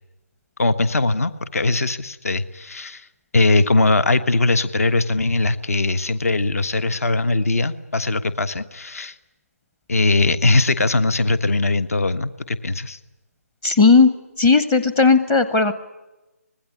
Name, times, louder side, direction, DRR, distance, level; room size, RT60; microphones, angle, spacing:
voice 1, 0.6-3.1 3.3-9.2 9.9-13.0, left 2 dB, 65° left, 12 dB, 1.4 m, -20 dB
voice 2, 13.6-14.1 14.4-15.7, left 4 dB, 10° left, 12 dB, 0.8 m, -15 dB
25.5 x 19.5 x 9.9 m, 1.1 s
figure-of-eight pair, 160°, 9 cm